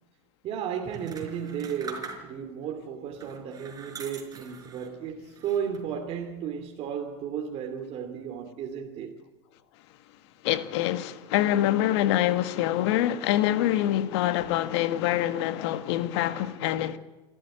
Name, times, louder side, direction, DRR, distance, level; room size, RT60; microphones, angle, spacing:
voice 1, 0.4-9.2, right 8 dB, 45° right, 2.7 m, -34 dB
sound 1, 0.9-2.6 3.1-5.0 5.4-6.0, right 5 dB, 25° right, 4.8 m, -43 dB
voice 2, 10.4-17.0, left 13 dB, 65° left, 1.6 m, -25 dB
27.5 x 13.5 x 9.0 m
hypercardioid pair, 105°, 15 cm